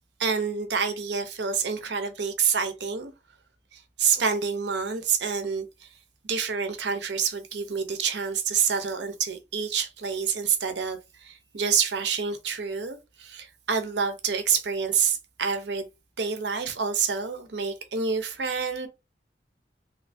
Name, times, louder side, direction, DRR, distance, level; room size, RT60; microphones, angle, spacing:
voice 1, 0.2-3.1 3.7-5.9 6.2-15.9 16.2-18.9, right 6 dB, 85° right, 0.7 m, -27 dB
3.2 x 2.8 x 2.7 m
head